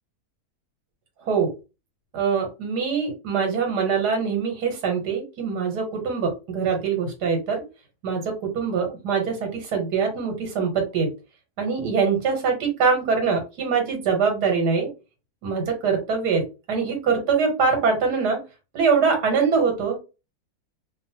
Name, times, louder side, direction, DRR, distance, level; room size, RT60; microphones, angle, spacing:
voice 1, 2.1-7.6 8.0-11.1 11.6-14.9 15.4-18.4 18.7-20.0, right 5 dB, 85° right, 3 dB, 1.5 m, -23 dB
2.9 x 2.2 x 2.7 m, 0.29 s
omnidirectional pair, 1.7 m